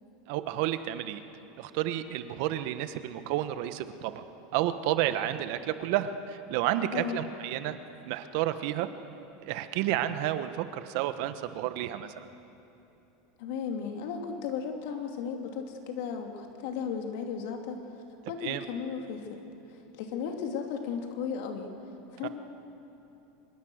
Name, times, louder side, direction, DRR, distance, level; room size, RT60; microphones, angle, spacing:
voice 1, 0.3-1.2 1.6-4.2 4.5-7.8 8.0-8.9 9.4-12.2 18.4-18.6 22.2-22.3, right 12 dB, 60° right, 11 dB, 1.2 m, -31 dB
voice 2, 13.4-21.7 22.1-22.3, left 6 dB, 70° left, 3 dB, 3.0 m, -35 dB
24.5 x 22.0 x 6.5 m, 2.9 s
supercardioid pair, 135°, 0 cm